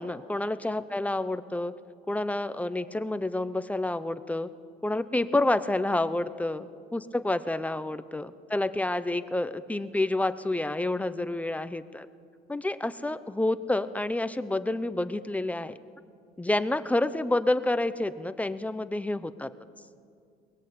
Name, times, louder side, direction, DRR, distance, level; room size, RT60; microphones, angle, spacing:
voice 1, 0.0-1.7 2.1-4.5 4.8-12.1 12.5-15.8 16.4-19.5, left 2 dB, 10° left, 12 dB, 0.8 m, -29 dB
22.0 x 20.0 x 8.7 m, 2.3 s
cardioid pair, 110°, 17 cm